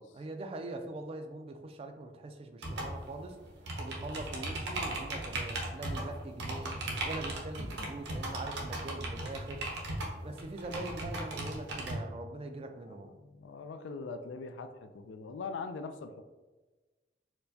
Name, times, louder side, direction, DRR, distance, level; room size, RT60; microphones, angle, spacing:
voice 1, 0.1-3.4 3.8-6.7 7.0-9.6 10.1-13.1, right 2 dB, 35° right, 6 dB, 0.3 m, -42 dB
sound 1, 2.6-11.9, right 1 dB, 70° right, 0.7 m, -37 dB
voice 2, 12.6-16.2, left 4 dB, 85° left, 8 dB, 0.3 m, -42 dB
4.4 x 2.1 x 2.7 m, 1.2 s
head